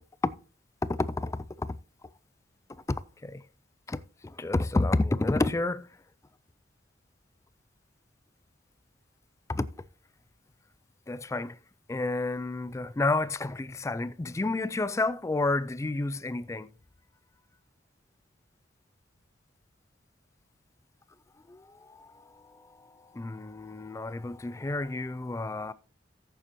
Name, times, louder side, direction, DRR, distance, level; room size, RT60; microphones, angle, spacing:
voice 1, 0.8-1.8 2.9-3.4 3.9-5.9 9.5-9.7 11.1-11.6 11.9-16.7 21.5-22.2 23.1-25.7, left 2 dB, 15° left, 0.3 m, -30 dB
14.0 x 6.9 x 3.0 m
head